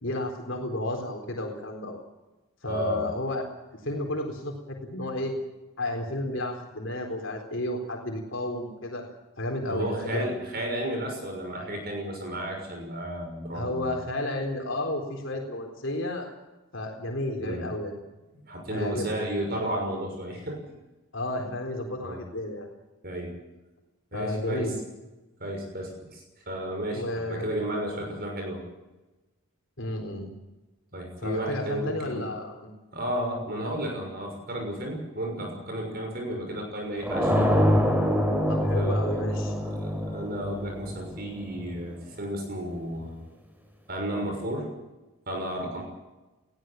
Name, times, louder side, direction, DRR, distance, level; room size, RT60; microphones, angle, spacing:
voice 1, 0.0-2.0 2.6-3.4 3.8-5.4 5.8-9.0 9.4-10.3 13.5-16.3 16.7-17.9 18.7-19.1 21.1-22.7 24.1-24.8 26.9-27.7 29.8-30.3 31.2-32.7 38.5-39.5, left 1 dB, 60° left, 2 dB, 4.1 m, -32 dB
voice 2, 2.7-3.1 9.7-14.0 17.4-17.7 18.5-20.7 22.0-22.2 23.0-23.4 24.1-24.7 25.4-28.7 30.9-32.3 32.9-37.3 38.7-39.2 39.6-43.2 43.9-44.7 45.3-45.8, equal, 45° right, 2 dB, 6.2 m, -33 dB
sound 1, 37.0-41.7, equal, 10° right, 3.8 m, -25 dB
20.5 x 16.0 x 9.1 m, 1.1 s
head